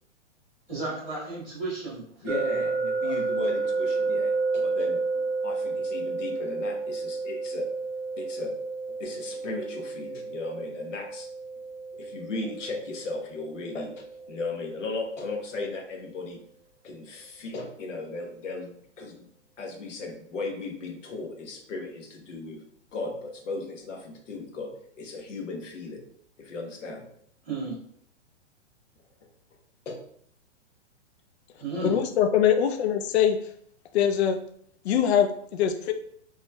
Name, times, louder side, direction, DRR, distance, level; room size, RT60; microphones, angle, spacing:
voice 1, 0.7-3.2 27.4-27.7 31.6-32.0, right 3 dB, 5° left, -18 dB, 0.4 m, -34 dB
voice 2, 2.2-5.0 5.4-7.7 8.2-8.5 8.9-11.3 11.9-16.4 16.8-19.3 19.6-22.6 22.9-26.0 26.4-27.1 29.8-30.0, left 3 dB, 85° left, 2 dB, 1.1 m, -36 dB
sound 1, 2.3-15.2, right 4 dB, 80° right, 0.8 m, -31 dB
voice 3, 31.8-33.4 33.9-34.4 34.8-35.9, left 9 dB, 60° left, 6 dB, 0.5 m, -22 dB
4.7 x 3.0 x 2.2 m, 0.64 s
hypercardioid pair, 175°, 36 cm